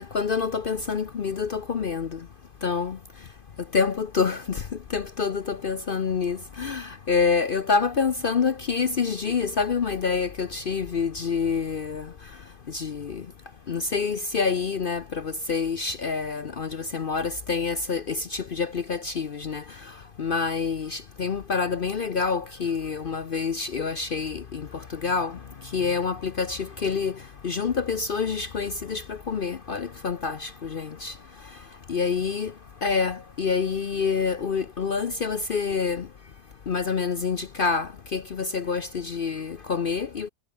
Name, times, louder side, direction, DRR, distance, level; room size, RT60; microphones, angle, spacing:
voice 1, 0.0-2.2 2.6-3.0 3.7-4.6 4.9-12.1 12.7-13.2 13.7-19.6 20.2-25.4 25.7-27.2 27.4-31.1 31.9-32.5 32.8-36.1 36.7-40.3, left 5 dB, 55° left, 0.6 m, -27 dB
omnidirectional pair, 1.9 m